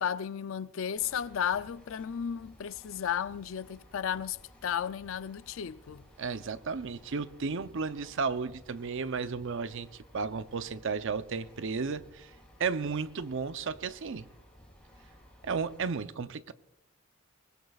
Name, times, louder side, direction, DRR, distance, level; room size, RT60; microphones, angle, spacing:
voice 1, 0.0-4.4 4.6-6.0, left 8 dB, 65° left, 0.4 m, -33 dB
sound 1, 0.9-15.9, equal, 5° left, 5.2 m, -57 dB
voice 2, 6.2-12.3 12.6-14.3 15.4-16.5, right 5 dB, 65° right, 0.6 m, -33 dB
24.0 x 20.0 x 2.4 m
head